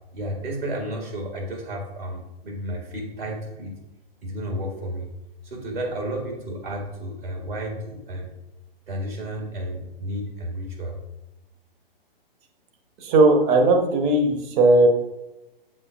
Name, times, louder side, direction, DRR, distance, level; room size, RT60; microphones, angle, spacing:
voice 1, 0.1-3.8 4.2-5.1 5.4-8.3 8.9-11.0, right 1 dB, 75° right, 0 dB, 2.1 m, -32 dB
voice 2, 13.0-14.9, right 2 dB, 30° right, 5 dB, 1.1 m, -17 dB
8.3 x 7.4 x 2.4 m, 0.96 s
figure-of-eight pair, 120°, 29 cm